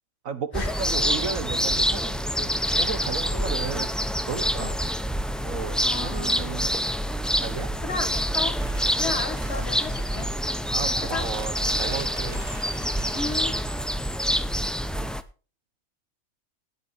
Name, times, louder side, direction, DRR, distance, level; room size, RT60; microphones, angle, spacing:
voice 1, 0.2-3.9 4.3-4.8 5.4-6.7 7.4-7.9 10.7-12.4, right 5 dB, 65° right, 1.8 m, -34 dB
sound 1, 0.5-15.2, equal, ahead, 0.4 m, -26 dB
voice 2, 5.8-6.7 7.8-8.6 9.0-10.3 11.0-11.3 13.1-13.5, left 3 dB, 50° left, 2.0 m, -34 dB
sound 2, 7.2-13.7, equal, 90° right, 4.5 m, -43 dB
19.0 x 7.7 x 4.5 m
omnidirectional pair, 1.5 m